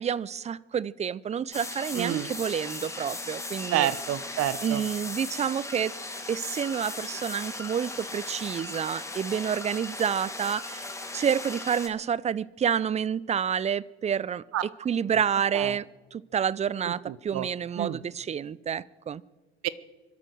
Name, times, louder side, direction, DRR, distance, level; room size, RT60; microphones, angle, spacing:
voice 1, 0.0-3.9 4.6-5.9 6.3-10.9 11.1-14.4 14.8-15.9 16.1-19.2, right 8 dB, 20° right, 0.5 m, -29 dB
sound 1, 1.5-11.9, left 2 dB, 10° left, 2.2 m, -37 dB
voice 2, 1.9-2.3 3.7-4.8 14.5-14.6 15.5-15.8 16.9-17.5 17.8-18.0 19.6-19.7, right 13 dB, 50° right, 1.0 m, -29 dB
24.0 x 12.5 x 4.7 m
hypercardioid pair, 75°, 31 cm